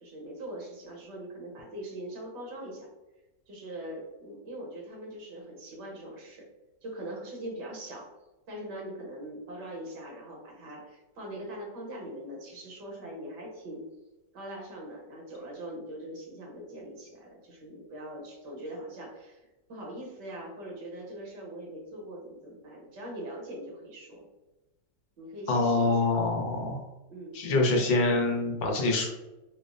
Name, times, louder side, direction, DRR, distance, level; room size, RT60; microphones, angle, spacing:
voice 1, 0.0-2.9 3.5-6.5 6.8-8.1 8.5-13.9 14.3-24.3 25.2-26.1 27.1-27.4, right 1 dB, 70° right, -2 dB, 1.5 m, -42 dB
voice 2, 25.5-26.8 27.3-29.1, left 2 dB, 85° left, 0 dB, 1.5 m, -25 dB
5.0 x 2.0 x 2.4 m, 1.0 s
omnidirectional pair, 2.0 m